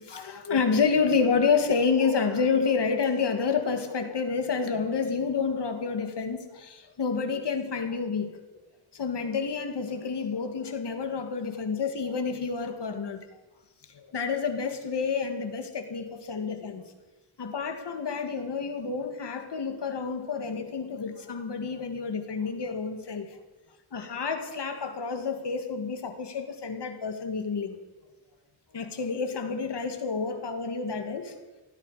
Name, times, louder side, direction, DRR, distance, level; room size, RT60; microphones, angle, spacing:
voice 1, 0.0-8.4 8.9-13.2 13.9-16.9 17.4-23.3 23.9-27.8 28.7-31.3, left 5 dB, 80° left, 6 dB, 2.1 m, -29 dB
17.0 x 16.0 x 5.0 m, 1.1 s
cardioid pair, 55°, 41 cm